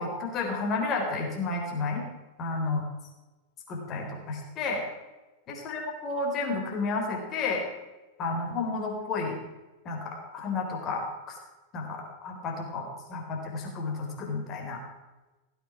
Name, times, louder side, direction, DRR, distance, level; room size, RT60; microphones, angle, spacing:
voice 1, 0.0-2.1 2.4-2.9 3.7-4.8 5.5-7.6 8.2-9.4 9.9-11.3 11.7-14.8, left 3 dB, 30° left, 1 dB, 3.7 m, -31 dB
16.5 x 8.9 x 6.0 m, 1.1 s
figure-of-eight pair, 90°, 0 cm